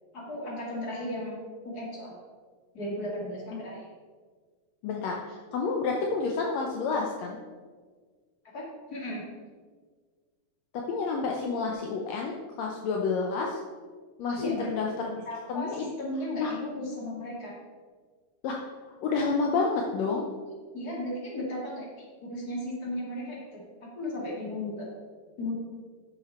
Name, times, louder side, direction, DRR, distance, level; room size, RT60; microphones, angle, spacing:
voice 1, 0.1-1.4 1.6-2.2 2.7-3.9 8.5-8.6 8.9-9.2 14.3-14.7 15.3-17.5 20.7-24.9 25.4-25.5, left 1 dB, 30° left, -3 dB, 2.3 m, -35 dB
voice 2, 4.8-7.4 10.9-13.6 14.2-15.2 15.5-15.8 16.4-16.5 18.4-18.6 19.0-20.2, left 4 dB, 75° left, 0 dB, 1.6 m, -29 dB
10.0 x 6.8 x 4.3 m, 1.5 s
omnidirectional pair, 4.0 m